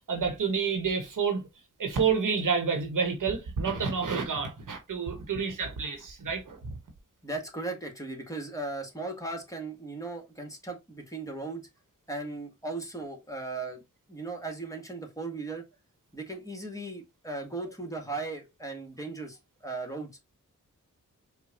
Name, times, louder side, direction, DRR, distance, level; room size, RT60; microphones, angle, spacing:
voice 1, 0.0-1.5 1.8-6.6, right 5 dB, 70° right, 1.1 m, -29 dB
voice 2, 7.2-11.6 12.1-13.8 14.1-15.6 16.1-20.2, right 3 dB, 10° left, 1.4 m, -37 dB
5.0 x 2.3 x 2.8 m
cardioid pair, 45°, 33 cm